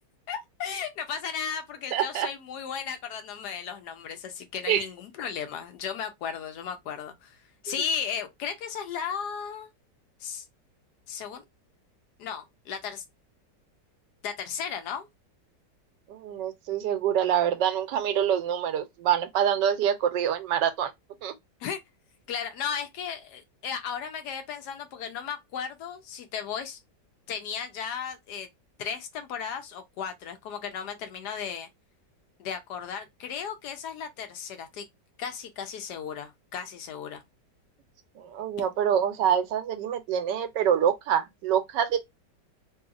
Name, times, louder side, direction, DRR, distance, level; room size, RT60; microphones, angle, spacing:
voice 1, 0.3-7.4 7.6-9.7 10.2-10.4 11.1-11.4 12.2-13.0 14.2-15.1 21.6-21.8 22.3-26.8 27.3-28.5 28.8-31.7 32.4-34.8 35.2-37.2, left 7 dB, 70° left, 1.1 m, -35 dB
voice 2, 1.9-2.3 4.7-4.8 16.1-20.9 21.2-21.3 38.2-42.0, right 9 dB, 90° right, 1.3 m, -26 dB
3.0 x 2.8 x 2.4 m
omnidirectional pair, 1.9 m